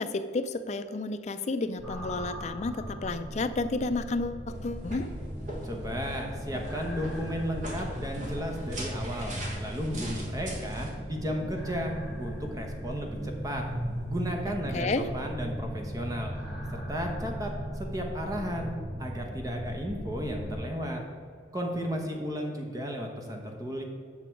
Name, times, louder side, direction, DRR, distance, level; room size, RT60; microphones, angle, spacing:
voice 1, 0.0-5.1 14.7-15.0, left 3 dB, 35° left, 10 dB, 0.4 m, -31 dB
sound 1, 1.8-20.6, equal, 5° right, 1.5 m, -38 dB
sound 2, 4.5-10.9, equal, 40° right, 1.3 m, -38 dB
voice 2, 5.6-13.7 14.1-16.3 16.7-18.7 19.0-21.0 21.5-23.8, equal, 20° right, 2 dB, 1.0 m, -34 dB
8.2 x 6.0 x 4.5 m, 2.2 s
head